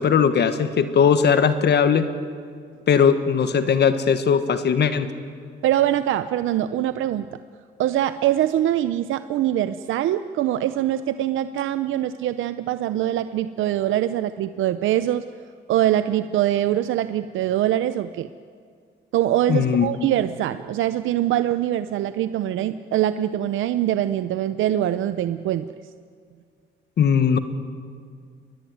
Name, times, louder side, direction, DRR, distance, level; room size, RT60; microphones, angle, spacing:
voice 1, 0.0-2.1 2.9-5.1 19.5-19.9 27.0-27.4, left 7 dB, 60° left, 10 dB, 1.5 m, -19 dB
voice 2, 5.6-7.4 7.8-15.3 15.7-18.3 19.1-25.7, right 12 dB, 80° right, 12 dB, 0.6 m, -23 dB
21.5 x 20.5 x 9.5 m, 2.1 s
cardioid pair, 90°, 20 cm